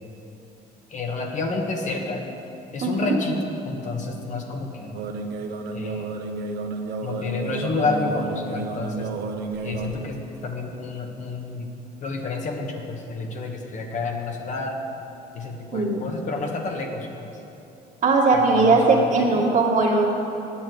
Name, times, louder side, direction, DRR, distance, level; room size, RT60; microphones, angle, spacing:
voice 1, 0.9-2.2 2.7-5.0 5.7-6.1 7.0-9.1 9.6-11.7 12.0-14.8 15.3-17.3 18.4-19.1 19.3-19.5, left 3 dB, 45° left, 2 dB, 1.4 m, -29 dB
voice 2, 2.8-3.2 15.7-16.0 18.0-20.1, right 3 dB, 50° right, -1 dB, 2.0 m, -19 dB
sound 1, 4.9-9.9, right 3 dB, 75° right, 1.0 m, -31 dB
8.7 x 8.7 x 7.9 m, 2.9 s
cardioid pair, 110°, 17 cm